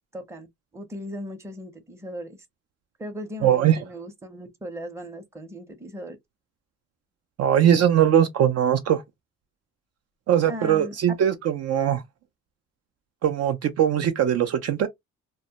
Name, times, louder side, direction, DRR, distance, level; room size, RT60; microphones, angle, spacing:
voice 1, 0.1-0.5 0.7-2.4 3.0-6.2 10.5-10.9, equal, 10° right, 0.6 m, -37 dB
voice 2, 3.4-3.8 7.4-9.0 10.3-12.0 13.2-14.9, right 10 dB, 55° right, 0.4 m, -20 dB
2.1 x 2.1 x 2.7 m
cardioid pair, 90°, 30 cm